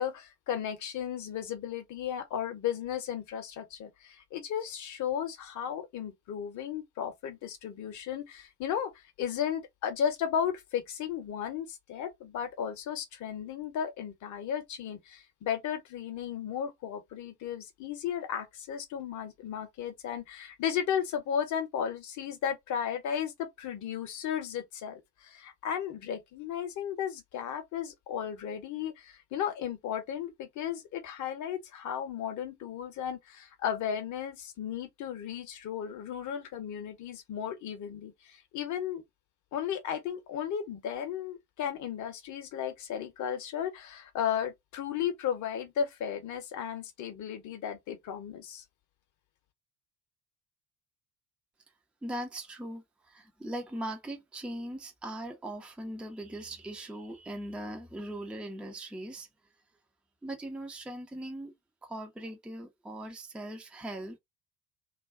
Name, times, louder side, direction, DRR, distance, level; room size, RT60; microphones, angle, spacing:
voice 1, 0.0-8.9 9.2-39.0 39.5-48.6, left 8 dB, 40° left, 0.8 m, -35 dB
voice 2, 52.0-59.3 60.2-61.5 61.8-64.2, right 1 dB, 5° right, 0.5 m, -40 dB
2.4 x 2.2 x 3.6 m
figure-of-eight pair, 55°, 45 cm